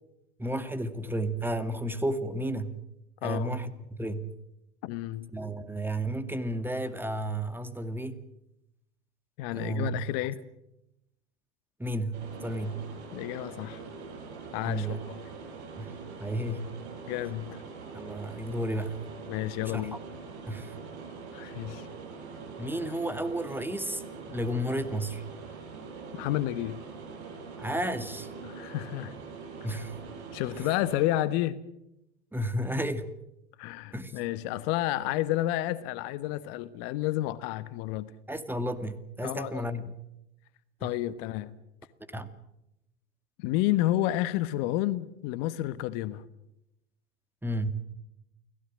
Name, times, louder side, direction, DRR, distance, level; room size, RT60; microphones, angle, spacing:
voice 1, 0.4-2.8 3.2-4.3 5.3-8.2 9.5-10.0 11.8-12.9 14.6-15.0 15.8-16.8 17.9-19.0 19.7-20.0 20.5-20.7 22.6-24.0 24.3-25.2 27.6-28.3 29.6-30.0 32.3-33.1 33.9-34.1 38.3-40.0 40.8-40.9 42.0-42.3 47.4-47.7, right 1 dB, 5° right, 10 dB, 2.3 m, -32 dB
voice 2, 3.2-3.5 4.8-5.3 9.4-10.4 13.1-13.8 14.5-15.1 17.1-17.6 19.3-20.0 21.3-21.9 26.1-26.8 28.4-29.1 30.3-31.6 33.6-38.1 39.2-39.7 40.8-41.6 43.4-46.2, left 15 dB, 55° left, 14 dB, 1.3 m, -30 dB
sound 1, 12.1-31.1, right 5 dB, 70° right, 6.5 m, -43 dB
29.5 x 18.5 x 7.5 m, 0.85 s
hypercardioid pair, 85°, 34 cm